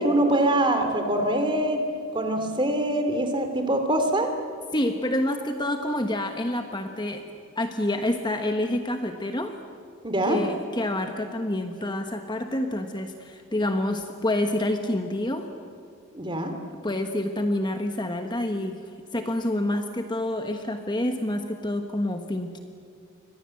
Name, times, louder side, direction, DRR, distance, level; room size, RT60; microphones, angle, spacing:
voice 1, 0.0-1.8 2.1-4.3 10.0-10.4 16.1-16.6, right 1 dB, 20° right, 6 dB, 2.9 m, -24 dB
voice 2, 4.7-7.2 7.6-9.6 10.3-15.5 16.8-18.8 19.1-22.6, left 1 dB, 20° left, 5 dB, 1.3 m, -28 dB
29.0 x 24.0 x 7.8 m, 2.4 s
head